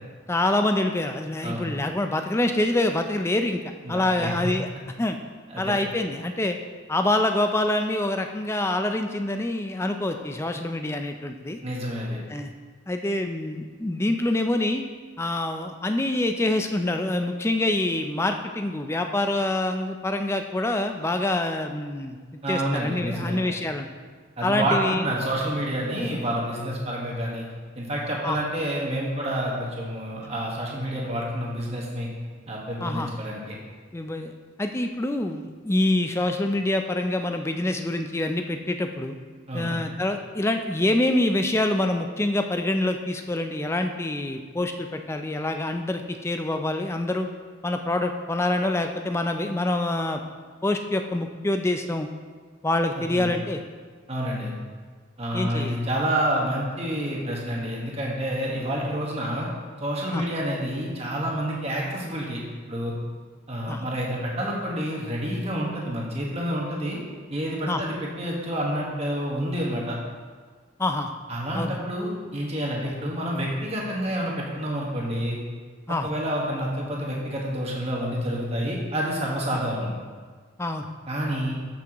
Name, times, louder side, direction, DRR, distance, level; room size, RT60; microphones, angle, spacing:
voice 1, 0.3-3.6 3.9-4.7 5.0-5.2 5.6-6.6 6.9-11.6 12.3-12.5 12.9-14.8 15.2-22.2 22.5-23.9 24.4-25.1 28.2-28.4 32.8-33.1 33.9-34.3 34.6-39.2 39.5-47.3 47.6-50.2 50.6-52.1 52.6-53.6 55.3-55.8 60.1-60.2 63.7-63.8 67.7-67.8 70.8-71.1 71.5-71.8 75.9-76.1 79.5-79.6 80.6-80.9, left 1 dB, 15° left, 6 dB, 0.4 m, -26 dB
voice 2, 3.8-4.3 5.5-5.8 11.6-12.2 22.4-23.4 24.4-27.5 27.7-32.1 32.5-33.5 39.5-39.8 52.9-53.3 54.1-54.5 55.2-59.5 59.8-62.4 62.7-62.9 63.5-67.0 67.3-70.0 71.3-75.4 76.0-79.9 81.1-81.5, equal, 30° right, -3 dB, 1.4 m, -28 dB
12.5 x 5.9 x 3.0 m, 1.5 s
head